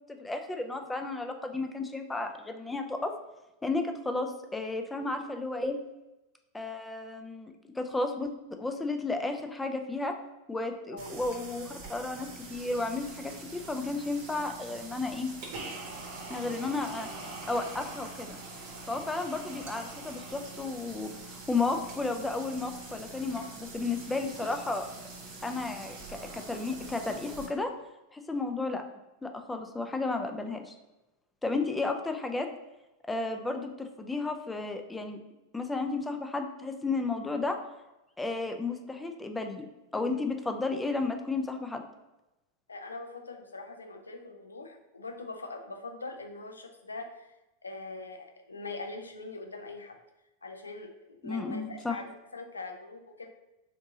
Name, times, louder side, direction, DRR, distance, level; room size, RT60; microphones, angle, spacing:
voice 1, 0.1-3.2 3.6-5.8 6.5-10.1 10.5-15.3 16.3-17.1 17.5-18.4 18.9-24.9 25.4-27.7 28.1-28.8 29.2-30.8 31.4-32.5 33.1-35.2 35.5-37.6 38.2-39.7 39.9-41.8 51.2-52.0, left 3 dB, 10° left, 5 dB, 0.4 m, -33 dB
coffe maker edited, 11.0-27.5, right 3 dB, 45° right, 0.9 m, -44 dB
voice 2, 42.7-47.3 47.6-50.0 50.4-53.3, left 3 dB, 75° left, 6 dB, 0.5 m, -42 dB
4.0 x 3.4 x 2.7 m, 0.97 s
figure-of-eight pair, 90°, 0 cm